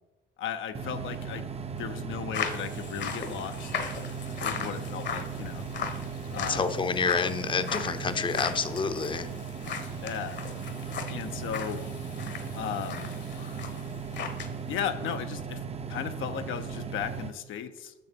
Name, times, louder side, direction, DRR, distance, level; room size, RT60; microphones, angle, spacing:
voice 1, 0.4-1.4 1.8-3.8 4.4-5.7 6.3-6.8 10.0-10.4 11.1-11.8 12.5-13.1 14.7-15.6 15.9-17.9, left 8 dB, 80° left, 8 dB, 0.7 m, -35 dB
sound 1, 0.7-17.3, right 6 dB, 30° right, 0.6 m, -37 dB
sound 2, 2.3-14.5 14.8-15.1, left 6 dB, 65° left, 1.2 m, -38 dB
voice 2, 6.5-9.3, left 5 dB, 25° left, 10 dB, 0.6 m, -28 dB
7.2 x 6.9 x 5.1 m, 1.0 s
cardioid pair, 90°, 20 cm